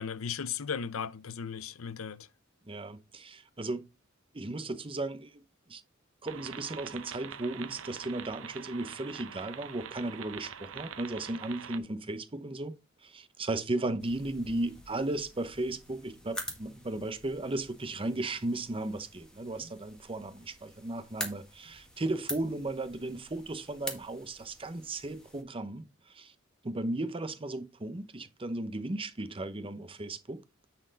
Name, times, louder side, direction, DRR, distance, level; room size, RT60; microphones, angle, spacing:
voice 1, 0.0-2.3, left 7 dB, 90° left, 0.6 m, -36 dB
voice 2, 2.7-3.9 4.3-5.4 5.7-5.8 6.2-12.8 13.0-26.3 26.6-30.4, right 2 dB, 25° right, 0.8 m, -35 dB
sound 1, 6.3-11.8, right 7 dB, 70° right, 0.8 m, -44 dB
sound 2, 14.0-25.4, equal, 5° left, 1.7 m, -46 dB
9.6 x 4.4 x 4.0 m
head